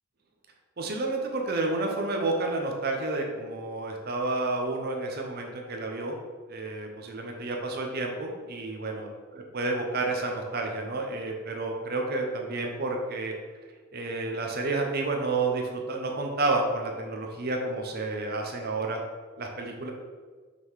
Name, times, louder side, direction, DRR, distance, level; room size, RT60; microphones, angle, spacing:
voice 1, 0.8-6.2 6.5-13.3 13.9-19.0 19.4-19.9, right 2 dB, 50° right, 2 dB, 0.8 m, -30 dB
5.9 x 3.8 x 4.8 m, 1.5 s
head